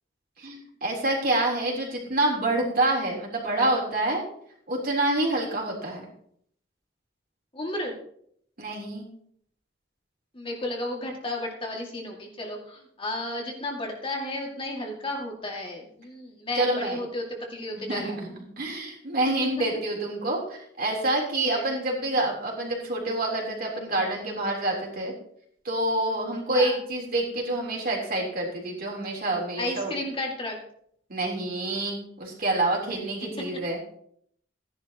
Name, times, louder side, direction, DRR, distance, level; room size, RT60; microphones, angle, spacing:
voice 1, 0.4-4.2 4.7-6.1 8.6-9.1 16.6-17.0 17.7-25.1 25.6-29.9 31.1-33.8, right 2 dB, 55° right, -1 dB, 3.6 m, -27 dB
voice 2, 7.5-7.9 10.3-18.2 21.5-21.7 26.5-26.8 29.6-30.6, left 1 dB, 30° left, 0 dB, 2.1 m, -33 dB
15.5 x 11.0 x 3.0 m, 0.67 s
head